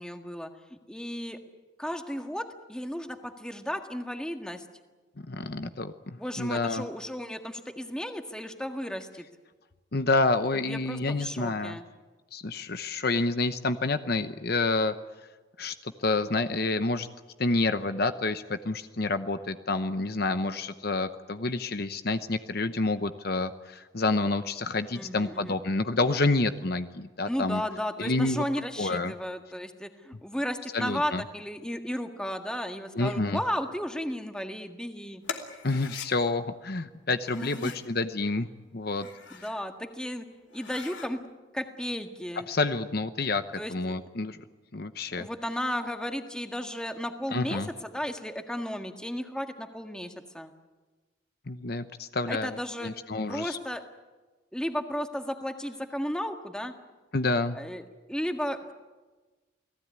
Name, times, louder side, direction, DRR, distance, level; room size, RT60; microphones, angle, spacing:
voice 1, 0.0-1.4 1.8-4.7 6.2-9.3 10.5-11.9 24.9-25.6 27.2-35.2 37.4-37.7 39.3-40.3 40.5-41.2 41.5-42.5 43.6-44.0 45.1-50.5 52.3-52.9 53.3-53.8 54.5-56.7 57.5-58.7, equal, 5° left, 5 dB, 1.7 m, -34 dB
voice 2, 5.3-6.9 9.9-11.8 12.3-14.9 15.6-17.1 17.4-27.6 28.0-28.4 28.8-29.1 30.7-31.2 32.9-33.4 35.6-38.5 38.7-39.1 42.5-43.4 43.7-44.4 44.7-45.3 47.3-47.7 51.5-53.6 57.1-57.6, left 3 dB, 50° left, 10 dB, 0.9 m, -28 dB
sound 1, 35.2-36.1 37.2-37.9 38.8-39.6 40.0-40.1 40.5-41.1, left 6 dB, 70° left, 2.9 m, -41 dB
29.0 x 19.0 x 9.7 m, 1.2 s
head